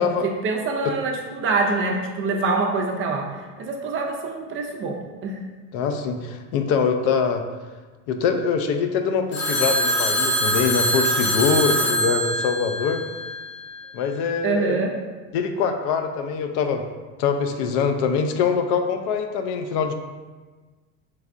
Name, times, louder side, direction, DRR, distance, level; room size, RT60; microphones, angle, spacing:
voice 1, 0.4-3.3 3.6-5.4 14.4-15.0, right 3 dB, 35° right, 1 dB, 0.4 m, -25 dB
voice 2, 5.7-7.4 8.1-13.0 13.9-14.8 15.3-16.9 17.2-19.9, left 6 dB, 65° left, 6 dB, 0.5 m, -23 dB
Telephone, 9.3-13.6, equal, 90° left, 1.3 m, -23 dB
3.4 x 3.2 x 2.5 m, 1.3 s
supercardioid pair, 110°, 40 cm